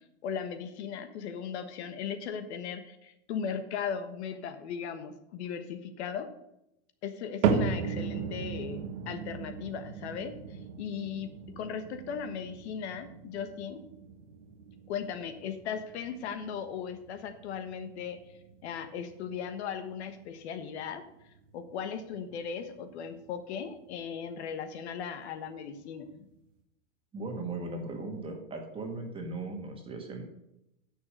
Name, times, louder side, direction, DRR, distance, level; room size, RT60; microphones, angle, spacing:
voice 1, 0.2-6.3 7.0-13.8 14.9-18.2 18.6-21.0 21.5-26.2, left 7 dB, 60° left, 9 dB, 1.4 m, -37 dB
sound 1, 7.4-23.7 24.1-24.6 25.2-25.3 26.1-26.2, right 6 dB, 80° right, 1.6 m, -37 dB
voice 2, 27.1-30.2, right 3 dB, 15° right, 3 dB, 1.8 m, -38 dB
9.7 x 6.8 x 6.6 m, 0.86 s
supercardioid pair, 150°, 37 cm